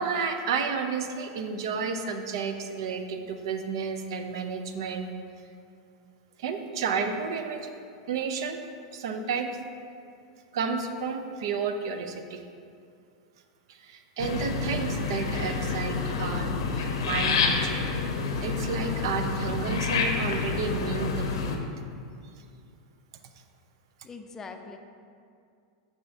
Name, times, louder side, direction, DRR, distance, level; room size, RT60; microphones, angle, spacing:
voice 1, 0.0-5.1 6.4-7.7 8.1-8.6 8.9-9.6 10.5-12.4 13.7-18.0 18.4-21.6, right 5 dB, 70° right, 7 dB, 0.5 m, -31 dB
sound 1, 14.2-21.6, left 4 dB, 80° left, 0.6 m, -28 dB
voice 2, 24.0-24.8, left 4 dB, 20° left, 5 dB, 0.4 m, -42 dB
6.2 x 6.1 x 2.7 m, 2.4 s
hypercardioid pair, 120°, 3 cm